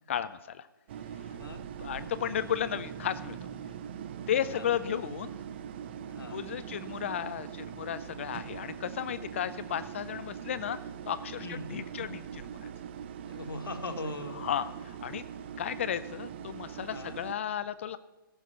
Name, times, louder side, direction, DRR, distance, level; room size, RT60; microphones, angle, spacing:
voice 1, 0.1-0.7 1.8-3.4 4.3-5.4 6.3-10.8 11.1-12.7 14.4-15.2 15.6-18.0, left 9 dB, 35° left, 13 dB, 0.4 m, -34 dB
sound 1, 0.9-17.3, right 8 dB, 30° right, 0.5 m, -42 dB
voice 2, 1.3-1.7 4.5-4.7 6.1-6.4 11.4-11.8 13.3-14.4 16.9-17.2, left 2 dB, 75° left, 5 dB, 1.9 m, -40 dB
15.5 x 6.1 x 7.0 m, 1.1 s
hypercardioid pair, 150°, 12 cm